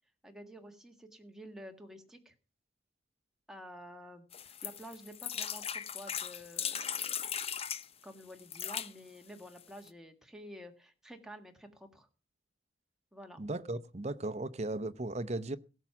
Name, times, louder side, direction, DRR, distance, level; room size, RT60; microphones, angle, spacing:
voice 1, 0.2-2.3 3.5-7.3 8.0-12.1 13.1-13.4, equal, 5° right, 1.6 m, -50 dB
sound 1, 4.3-7.9 8.4-8.9 9.6-9.7 9.9-10.0, left 8 dB, 30° left, 0.7 m, -38 dB
voice 2, 13.4-15.6, right 2 dB, 35° right, 0.7 m, -36 dB
17.0 x 7.3 x 5.9 m
head